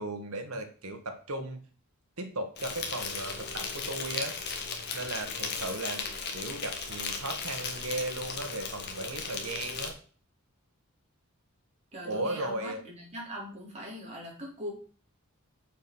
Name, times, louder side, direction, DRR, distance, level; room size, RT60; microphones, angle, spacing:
voice 1, 0.0-1.6 2.2-4.4 4.9-10.0 12.0-12.8, right 2 dB, 75° right, 5 dB, 1.7 m, -36 dB
Insect, 2.6-9.9, left 5 dB, 50° left, 1.7 m, -36 dB
voice 2, 11.9-14.7, equal, 30° right, -3 dB, 3.8 m, -41 dB
7.2 x 6.1 x 6.1 m, 0.42 s
head